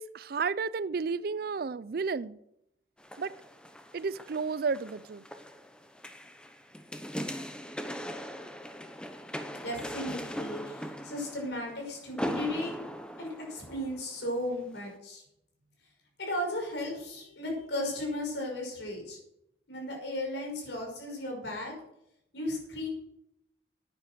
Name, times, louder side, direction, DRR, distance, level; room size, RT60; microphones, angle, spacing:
voice 1, 0.0-2.4 3.2-3.3 3.9-5.2, right 5 dB, 55° right, 0.4 m, -32 dB
sound 1, 3.0-14.2 14.8-14.9, equal, 5° left, 0.8 m, -40 dB
voice 2, 9.6-12.8 13.2-15.2 16.2-19.2 19.7-21.8 22.3-22.9, left 1 dB, 80° left, 5.7 m, -35 dB
10.0 x 9.5 x 6.1 m
head